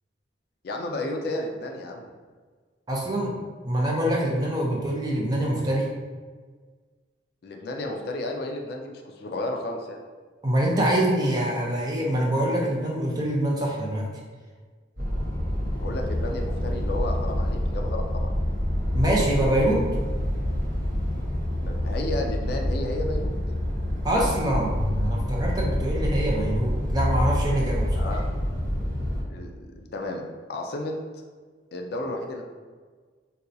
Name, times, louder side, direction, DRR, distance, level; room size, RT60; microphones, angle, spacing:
voice 1, 0.6-2.1 7.4-10.0 15.8-18.3 21.6-23.4 28.0-28.2 29.3-30.2 30.5-30.9 31.7-32.4, left 1 dB, 55° left, 2 dB, 0.4 m, -32 dB
voice 2, 2.9-3.3 3.6-5.9 10.4-14.1 18.9-19.8 24.0-28.2, right 1 dB, 20° right, -2 dB, 0.5 m, -25 dB
sound 1, 15.0-29.2, equal, 50° right, 1.1 m, -27 dB
4.1 x 2.3 x 2.6 m, 1.5 s
head